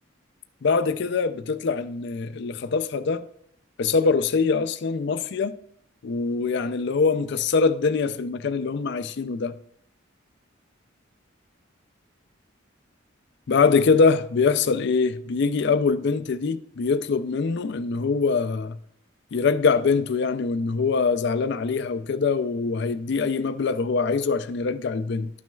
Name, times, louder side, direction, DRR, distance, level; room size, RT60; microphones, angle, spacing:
voice 1, 0.6-3.2 3.8-5.6 6.0-9.5 13.5-18.8 19.3-25.3, left 4 dB, 60° left, 0.4 m, -23 dB
12.0 x 6.2 x 2.3 m
head